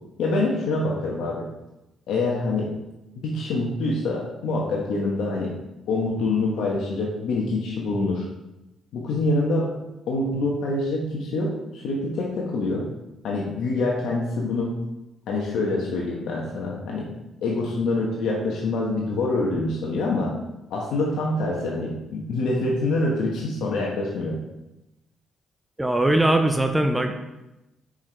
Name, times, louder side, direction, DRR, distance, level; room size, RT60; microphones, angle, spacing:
voice 1, 0.2-1.5 2.1-2.7 3.2-5.5 5.9-8.3 8.9-9.7 10.1-12.9 13.2-14.7 15.3-17.1 17.4-20.3 20.7-24.4, left 2 dB, 80° left, -2 dB, 1.1 m, -25 dB
voice 2, 25.8-27.1, right 1 dB, 10° right, 5 dB, 0.6 m, -20 dB
5.8 x 4.9 x 4.5 m, 0.95 s
cardioid pair, 90°, 0 cm